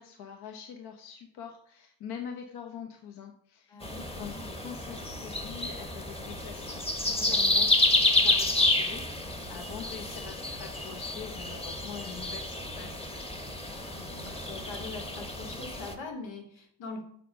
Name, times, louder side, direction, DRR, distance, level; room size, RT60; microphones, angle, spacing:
voice 1, 0.0-3.8 4.2-7.9 8.2-13.2, left 8 dB, 60° left, 4 dB, 1.1 m, -44 dB
voice 2, 3.7-4.6 13.8-17.0, left 3 dB, 85° left, 2 dB, 2.5 m, -42 dB
sound 1, 3.8-15.9, left 2 dB, 15° left, 1.0 m, -29 dB
7.5 x 6.4 x 5.4 m, 0.70 s
cardioid pair, 140°, 43 cm